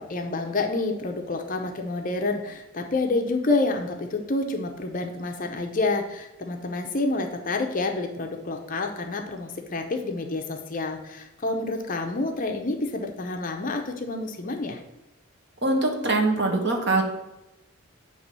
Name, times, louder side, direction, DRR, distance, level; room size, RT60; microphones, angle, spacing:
voice 1, 0.0-14.8, left 2 dB, 35° left, 4 dB, 0.6 m, -28 dB
voice 2, 15.6-17.0, right 2 dB, 50° right, 2 dB, 1.1 m, -23 dB
7.5 x 3.0 x 5.4 m, 0.98 s
head